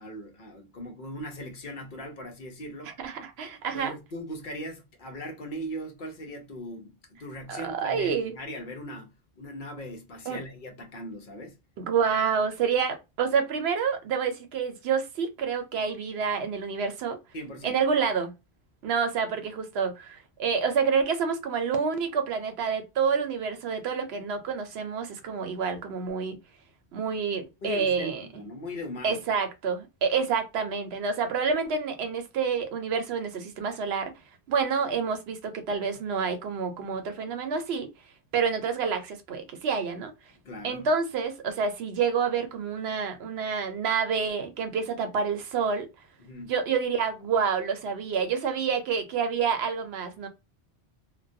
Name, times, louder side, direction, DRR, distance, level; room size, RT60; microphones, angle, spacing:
voice 1, 0.0-3.0 3.7-9.1 9.4-11.6 17.3-17.8 27.6-29.2 40.3-40.9 46.2-46.5, equal, 55° left, 0.7 m, -39 dB
voice 2, 3.0-3.9 7.5-8.3 10.3-10.4 11.8-17.2 17.6-18.3 18.8-26.4 26.9-28.4 29.0-34.1 34.5-37.9 38.3-40.1 40.6-45.9 46.5-50.3, right 6 dB, 75° right, 0.8 m, -28 dB
2.3 x 2.2 x 2.5 m
omnidirectional pair, 1.1 m